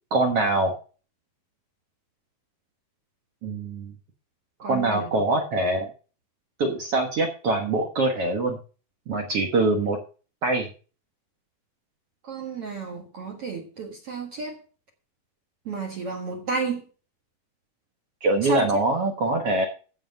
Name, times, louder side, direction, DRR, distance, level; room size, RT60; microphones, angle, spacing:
voice 1, 0.1-0.7 3.4-3.9 4.7-5.9 6.6-8.6 9.1-10.0 10.4-10.7 18.2-19.6, right 2 dB, 75° right, 3 dB, 1.3 m, -23 dB
voice 2, 4.6-5.2 12.2-14.6 15.7-16.9 18.4-18.8, right 5 dB, 50° right, 1 dB, 1.9 m, -31 dB
14.5 x 5.1 x 6.5 m, 0.37 s
omnidirectional pair, 4.8 m